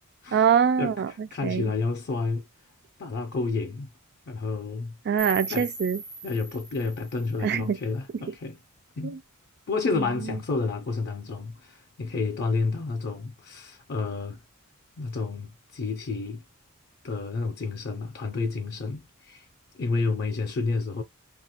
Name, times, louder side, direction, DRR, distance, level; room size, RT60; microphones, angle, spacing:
voice 1, 0.3-1.7 5.1-6.0 7.4-7.8 9.0-9.2 9.9-10.4, right 7 dB, 50° right, 0.4 m, -25 dB
voice 2, 1.3-2.4 3.0-3.9 4.3-5.0 5.5-5.7 6.2-8.6 9.0-9.2 9.7-14.4 15.0-16.4 17.0-19.5 19.7-21.0, left 3 dB, 45° left, 0.4 m, -30 dB
sound 1, 5.2-8.2, right 3 dB, 80° right, 1.0 m, -39 dB
3.2 x 2.3 x 2.8 m
head